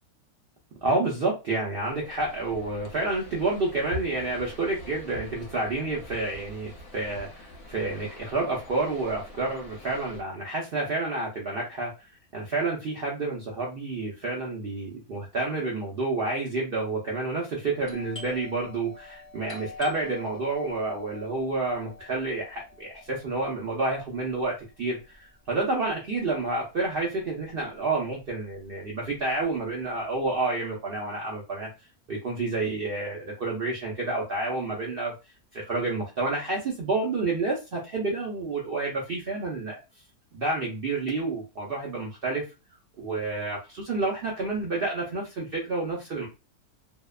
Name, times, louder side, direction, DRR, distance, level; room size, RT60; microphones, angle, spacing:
voice 1, 0.8-31.7 32.1-35.1 35.5-39.8 40.3-42.4 43.0-46.3, right 3 dB, 70° right, -2 dB, 0.5 m, -29 dB
sound 1, 1.9-10.2, equal, 75° left, 1.2 m, -44 dB
Doorbell, 17.8-27.2 27.5-27.6 28.2-28.5 28.9-30.2, left 3 dB, 20° left, 0.3 m, -47 dB
2.8 x 2.1 x 2.2 m, 0.28 s
omnidirectional pair, 1.6 m